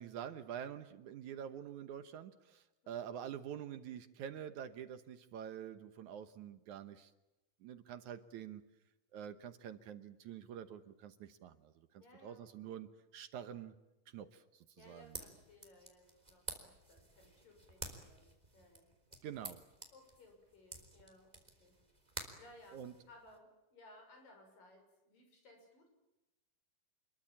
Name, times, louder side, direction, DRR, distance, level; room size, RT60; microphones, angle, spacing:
voice 1, 0.0-7.1 7.6-8.6 9.1-13.7 14.1-15.2 19.2-19.6 22.7-22.9, right 9 dB, 70° right, 10 dB, 2.3 m, -47 dB
voice 2, 2.8-3.2 12.0-12.7 13.4-13.6 14.8-18.9 19.9-21.3 21.6-21.8 22.1-22.8 23.1-25.9, left 1 dB, 75° left, 4 dB, 8.4 m, -62 dB
sound 1, 14.8-23.4, right 2 dB, 10° right, 3.5 m, -51 dB
27.5 x 22.0 x 8.7 m, 0.96 s
omnidirectional pair, 4.0 m